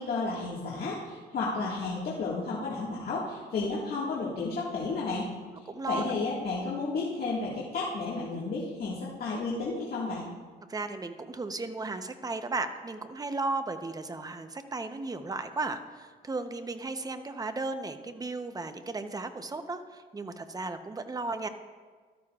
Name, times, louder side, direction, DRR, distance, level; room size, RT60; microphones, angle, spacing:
voice 1, 0.0-5.3 5.9-10.2, left 3 dB, 55° left, -6 dB, 1.8 m, -32 dB
voice 2, 5.7-6.0 10.7-21.5, right 3 dB, 20° right, 9 dB, 0.8 m, -35 dB
13.5 x 13.0 x 2.4 m, 1.5 s
cardioid pair, 95°, 18 cm